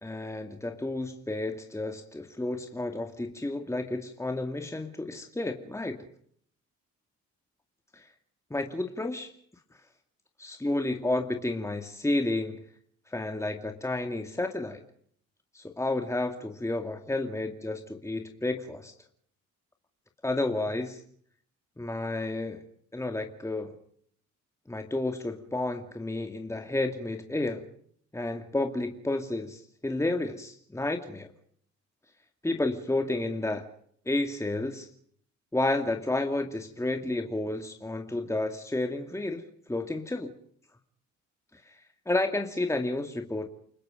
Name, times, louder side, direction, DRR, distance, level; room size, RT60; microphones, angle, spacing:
voice 1, 0.0-6.0 7.9-8.1 8.5-9.3 10.4-12.6 13.1-14.8 15.5-18.9 20.2-21.0 21.8-22.6 22.9-23.8 24.7-27.6 28.1-31.3 32.4-33.6 34.1-34.9 35.5-39.4 39.7-40.3 41.5-43.5, left 2 dB, 10° left, 4 dB, 2.4 m, -31 dB
29.5 x 20.0 x 5.2 m, 0.62 s
cardioid pair, 90°, 30 cm